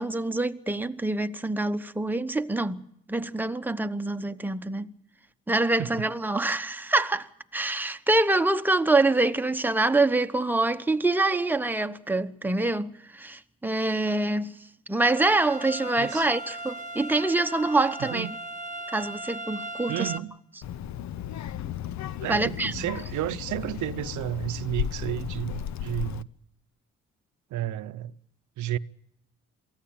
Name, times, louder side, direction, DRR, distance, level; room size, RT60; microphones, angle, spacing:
voice 1, 0.0-2.8 3.1-4.9 5.5-14.5 14.9-18.3 18.9-20.1 22.3-22.7, right 2 dB, 5° right, 1.0 m, -25 dB
sound 1, 15.2-20.2, right 1 dB, 25° right, 1.2 m, -37 dB
voice 2, 16.0-16.3 18.0-18.3 19.9-20.4 22.2-26.3 27.5-28.2 28.6-28.8, right 13 dB, 75° right, 0.7 m, -32 dB
Child speech kid speaking, 20.6-26.2, left 10 dB, 65° left, 0.8 m, -35 dB
23.0 x 15.5 x 8.8 m
cardioid pair, 90°, 30 cm